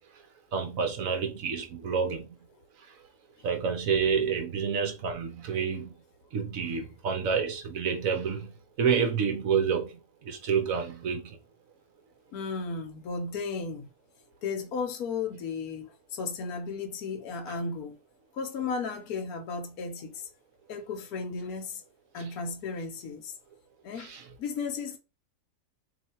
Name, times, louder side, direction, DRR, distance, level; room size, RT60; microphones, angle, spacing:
voice 1, 0.5-2.4 3.4-5.9 6.3-11.4 24.0-24.2, right 6 dB, 60° right, 1.3 m, -29 dB
voice 2, 12.3-13.9 14.4-18.0 18.4-20.3 20.7-21.8 22.1-23.3 23.8-25.0, left 4 dB, 70° left, 1.3 m, -34 dB
3.3 x 3.2 x 4.3 m
omnidirectional pair, 1.7 m